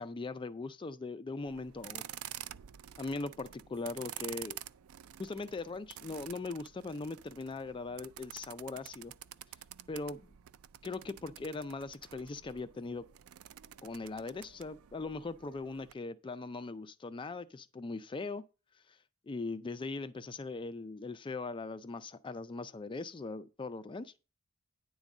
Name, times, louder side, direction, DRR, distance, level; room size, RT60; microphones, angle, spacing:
voice 1, 0.0-2.0 3.0-4.6 5.2-9.1 9.9-10.3 10.8-13.1 13.8-18.4 18.9-19.0 19.3-24.1, left 3 dB, 25° left, 0.4 m, -40 dB
sound 1, 1.5-15.9, right 12 dB, 80° right, 0.4 m, -49 dB
9.7 x 3.9 x 7.1 m
head